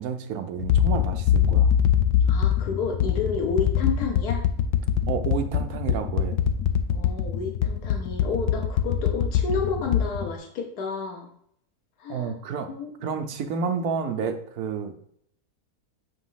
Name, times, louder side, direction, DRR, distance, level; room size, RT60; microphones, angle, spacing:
voice 1, 0.0-1.7 5.1-6.4 12.1-12.7 13.0-14.9, right 6 dB, 70° right, 7 dB, 1.2 m, -30 dB
sound 1, 0.6-10.3, left 9 dB, 65° left, 0.9 m, -23 dB
voice 2, 2.3-4.4 6.9-11.3 12.0-12.3 12.7-13.1, left 5 dB, 85° left, 2 dB, 1.5 m, -30 dB
7.7 x 3.0 x 5.6 m, 0.69 s
omnidirectional pair, 1.6 m